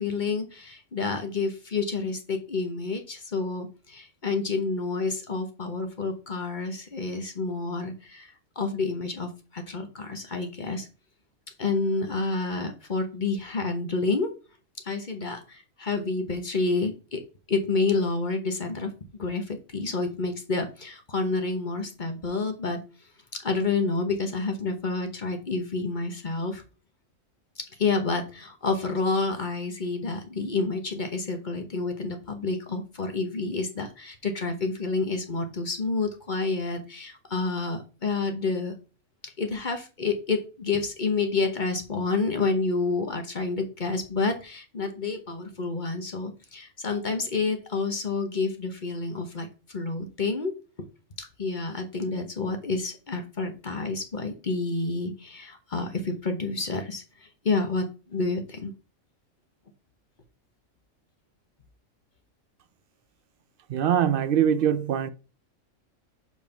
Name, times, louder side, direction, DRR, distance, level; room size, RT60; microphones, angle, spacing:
voice 1, 0.0-10.9 11.6-14.3 14.8-17.2 17.5-18.9 19.2-22.8 23.3-26.6 27.8-38.7 39.2-49.5 49.7-50.5 51.2-58.7, left 3 dB, 40° left, 1.1 m, -29 dB
voice 2, 63.7-65.1, right 9 dB, 65° right, 0.6 m, -23 dB
5.4 x 4.6 x 5.7 m
omnidirectional pair, 1.4 m